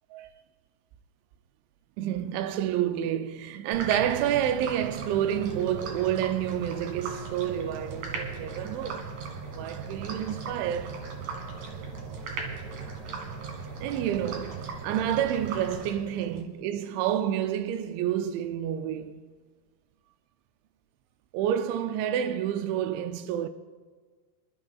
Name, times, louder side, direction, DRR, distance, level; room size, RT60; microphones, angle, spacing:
voice 1, 2.0-9.1 9.5-11.0 13.8-19.2 21.3-23.5, right 10 dB, 85° right, 2.7 m, -29 dB
sound 1, 3.7-16.4, right 5 dB, 60° right, 2.1 m, -38 dB
27.5 x 12.0 x 2.3 m
omnidirectional pair, 5.7 m